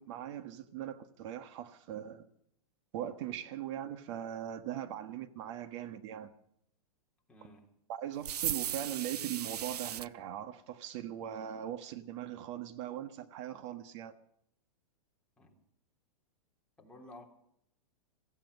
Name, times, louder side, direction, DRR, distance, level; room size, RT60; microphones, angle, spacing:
voice 1, 0.0-2.3 2.9-6.3 7.9-14.1, right 11 dB, 50° right, 1.5 m, -40 dB
voice 2, 7.3-7.7 15.4-15.6 16.8-17.2, left 1 dB, 5° left, 3.2 m, -53 dB
sound 1, 8.2-10.1, right 10 dB, 90° right, 0.5 m, -36 dB
17.0 x 15.0 x 5.4 m
hypercardioid pair, 135°, 20 cm